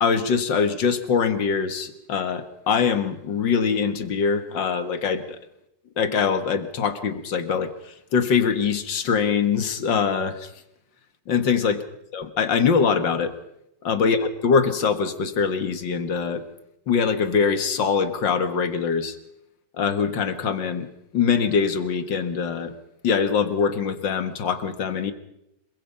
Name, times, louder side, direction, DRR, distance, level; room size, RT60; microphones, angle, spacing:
voice 1, 0.0-5.4 6.0-10.5 11.3-11.8 12.1-13.3 13.8-16.4 16.9-19.2 19.7-22.7 23.0-25.1, left 6 dB, 80° left, 10 dB, 2.3 m, -23 dB
26.5 x 23.5 x 5.6 m, 0.82 s
omnidirectional pair, 2.0 m